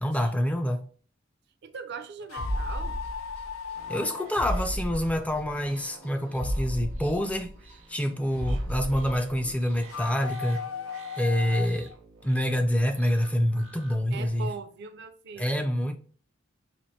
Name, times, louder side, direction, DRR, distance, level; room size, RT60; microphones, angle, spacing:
voice 1, 0.0-0.9 3.9-7.5 7.9-10.6 11.2-11.9 12.2-14.5 15.4-16.0, equal, 5° left, 0.4 m, -27 dB
voice 2, 1.6-3.0 14.1-15.7, right 5 dB, 55° right, 0.4 m, -40 dB
sound 1, 2.2-5.5 9.8-12.0, left 6 dB, 85° left, 0.4 m, -37 dB
sound 2, 2.4-3.7 4.0-4.1 4.4-5.7 6.0-6.1 6.4-8.1 8.4-9.7 10.0-10.1, equal, 55° left, 0.8 m, -33 dB
sound 3, 3.7-14.5, right 4 dB, 85° right, 0.8 m, -50 dB
4.4 x 2.5 x 2.7 m
head